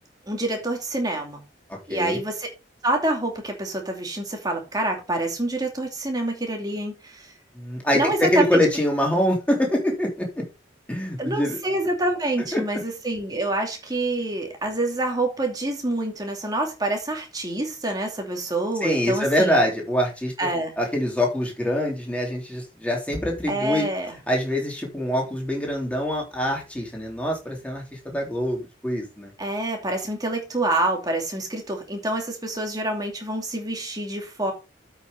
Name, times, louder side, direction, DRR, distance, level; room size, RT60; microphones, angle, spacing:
voice 1, 0.3-1.4 1.9-2.5 2.8-7.3 7.9-8.6 11.2-19.6 20.4-20.7 23.5-24.2 29.4-34.5, right 1 dB, 20° right, 2.6 m, -27 dB
voice 2, 1.7-2.2 7.5-10.4 10.9-11.6 12.5-12.6 18.8-20.3 20.8-23.9 24.3-29.3, equal, 5° left, 3.3 m, -24 dB
8.2 x 5.8 x 5.1 m
head